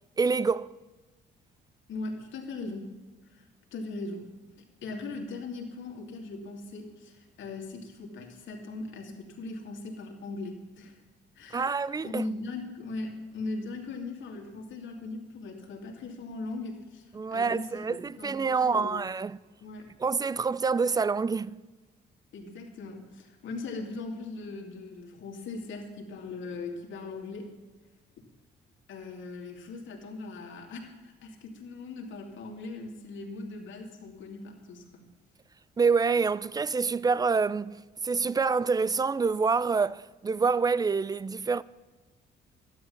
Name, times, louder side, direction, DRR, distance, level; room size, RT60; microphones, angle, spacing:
voice 1, 0.2-0.7 11.5-12.2 17.1-19.4 20.0-21.6 35.8-41.6, right 5 dB, 20° right, 0.3 m, -27 dB
voice 2, 1.9-2.9 3.3-4.3 4.8-11.0 11.3-19.1 19.6-19.9 22.3-27.5 28.9-35.0, left 3 dB, 75° left, 2.6 m, -39 dB
12.5 x 10.5 x 7.1 m
cardioid pair, 90°, 20 cm